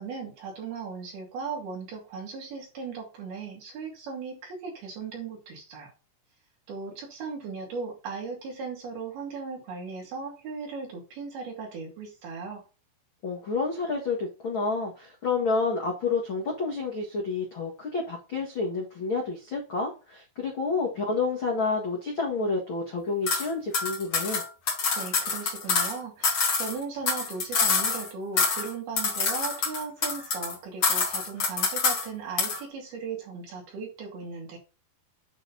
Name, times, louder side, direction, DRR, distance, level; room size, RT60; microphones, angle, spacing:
voice 1, 0.0-5.9 6.7-12.6 24.9-34.6, right 5 dB, 65° right, -1 dB, 4.5 m, -37 dB
voice 2, 13.2-24.4, left 4 dB, 55° left, -1 dB, 1.4 m, -29 dB
sound 1, 23.3-23.5 23.7-25.9 26.2-28.1 28.4-28.7 29.0-30.5 30.8-32.1 32.4-32.6, left 4 dB, 40° left, 2.1 m, -26 dB
9.4 x 4.0 x 4.1 m, 0.32 s
omnidirectional pair, 5.0 m